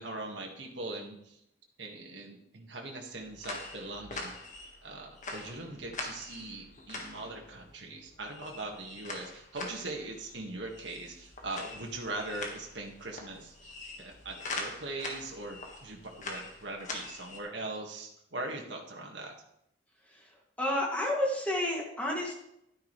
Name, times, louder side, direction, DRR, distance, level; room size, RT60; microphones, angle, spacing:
voice 1, 0.0-1.4 1.8-4.4 4.8-19.3, right 2 dB, 75° right, 1 dB, 1.8 m, -41 dB
sound 1, 3.1-17.4, left 2 dB, 40° left, 1.7 m, -44 dB
voice 2, 20.6-22.3, left 1 dB, 10° left, -2 dB, 2.3 m, -30 dB
12.0 x 9.6 x 3.3 m, 0.77 s
head